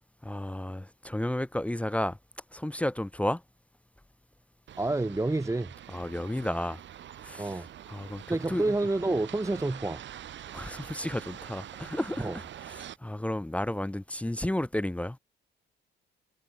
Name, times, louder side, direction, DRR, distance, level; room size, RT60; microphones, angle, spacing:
voice 1, 0.2-2.2 2.5-3.4 5.9-6.8 7.2-8.7 10.5-15.2, left 1 dB, 5° left, 0.7 m, -32 dB
sound 1, 4.7-13.0, right 11 dB, 70° right, 2.5 m, -45 dB
voice 2, 4.8-5.7 7.4-7.7 8.3-10.0 12.2-12.4, right 2 dB, 15° right, 3.0 m, -28 dB
cardioid pair, 90°, 20 cm